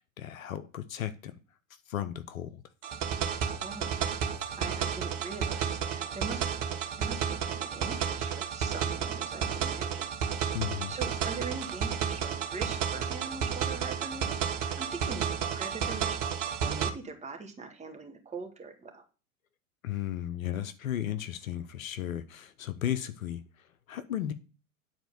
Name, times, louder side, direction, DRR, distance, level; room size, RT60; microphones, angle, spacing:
voice 1, 0.2-1.3 1.9-2.6 10.5-10.9 19.8-23.4 23.9-24.3, left 11 dB, 70° left, 1.0 m, -34 dB
sound 1, 2.8-16.9, right 7 dB, 60° right, 1.6 m, -32 dB
voice 2, 3.6-4.0 4.6-6.5 7.0-10.1 10.9-19.0, right 4 dB, 15° right, 2.3 m, -42 dB
9.2 x 4.4 x 6.9 m
hypercardioid pair, 100°, 43 cm